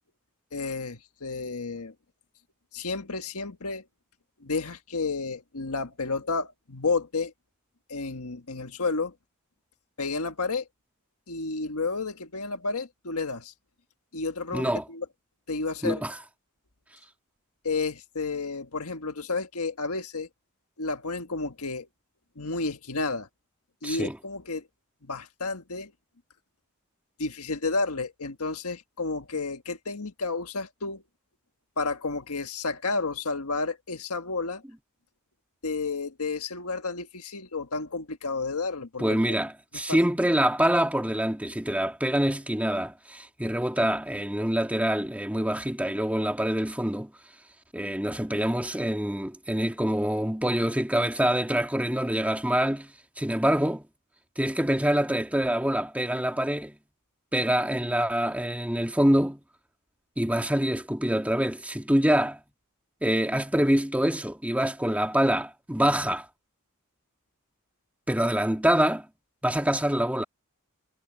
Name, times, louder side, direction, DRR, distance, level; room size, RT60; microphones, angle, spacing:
voice 1, 0.5-1.9 2.7-3.9 4.4-7.3 7.9-9.1 10.0-10.7 11.3-13.5 14.1-15.1 15.5-16.0 17.6-20.3 20.8-21.9 22.4-23.3 23.8-24.7 25.0-25.9 27.2-31.0 31.8-34.6 35.6-39.2 39.9-40.0, left 3 dB, 80° left, 1.6 m, -31 dB
voice 2, 14.5-14.8 15.8-16.1 23.8-24.2 39.0-47.1 47.7-52.9 53.2-53.8 54.4-56.8 57.3-59.4 60.2-62.4 63.0-66.3 68.1-69.1 69.4-70.2, right 1 dB, 5° right, 2.2 m, -25 dB
head